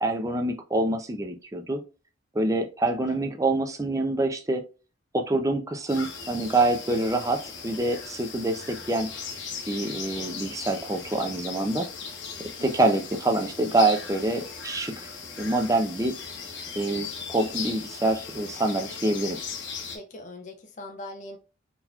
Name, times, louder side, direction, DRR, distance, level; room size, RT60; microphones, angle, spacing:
voice 1, 0.0-1.8 2.3-4.6 5.1-9.1 9.7-11.9 12.4-15.1 15.4-16.2 16.8-19.4, right 2 dB, 15° right, 0.5 m, -26 dB
sound 1, 5.9-20.0, left 5 dB, 60° left, 0.9 m, -38 dB
voice 2, 12.6-13.0 19.9-21.4, left 1 dB, 40° left, 0.5 m, -41 dB
3.8 x 2.9 x 2.3 m
head